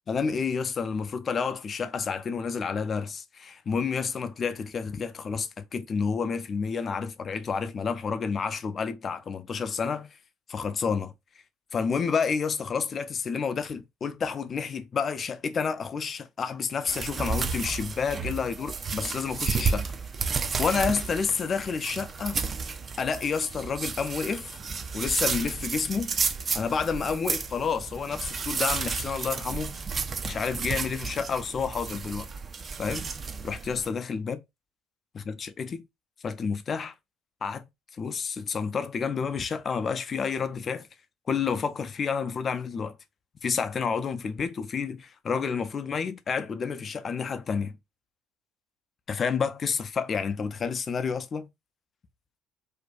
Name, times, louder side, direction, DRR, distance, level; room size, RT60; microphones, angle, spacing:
voice 1, 0.1-10.1 10.5-11.1 11.7-19.9 20.6-22.4 23.0-24.5 24.9-26.1 26.5-29.8 30.2-32.3 32.8-33.1 33.4-34.4 35.1-35.8 36.2-36.9 37.4-37.7 38.0-40.9 41.3-43.0 43.4-47.8 49.1-51.5, left 5 dB, 40° left, 0.4 m, -29 dB
sound 1, 16.9-33.9, right 5 dB, 35° right, 0.3 m, -32 dB
2.5 x 2.2 x 2.3 m
hypercardioid pair, 60°, 0 cm